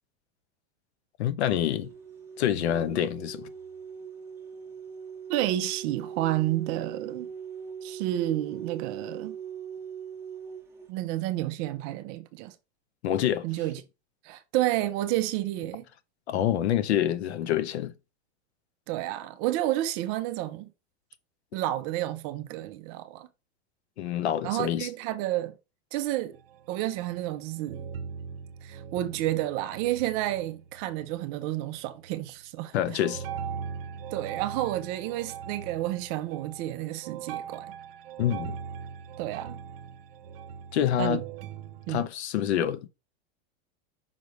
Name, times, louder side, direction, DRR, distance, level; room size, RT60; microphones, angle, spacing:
voice 1, 1.2-1.9 2.4-3.5 13.0-13.5 16.3-17.9 24.0-24.9 32.7-33.2 38.2-38.6 40.7-41.2 41.9-42.9, left 10 dB, 85° left, 0.9 m, -26 dB
sound 1, 1.8-10.9, right 7 dB, 10° right, 1.0 m, -41 dB
voice 2, 5.3-7.3 7.8-9.4 10.9-12.5 13.4-13.8 14.2-15.8 18.9-20.7 21.5-23.3 24.4-25.5 25.9-26.4 26.7-27.9 28.6-33.0 34.1-37.7 39.2-39.6 41.0-41.2 41.9-42.1, right 15 dB, 30° right, 0.5 m, -30 dB
sound 2, 26.3-27.4 27.7-31.5 31.8-32.3 33.0-42.1, right 7 dB, 60° right, 0.8 m, -41 dB
5.7 x 3.2 x 5.2 m
supercardioid pair, 170°, 32 cm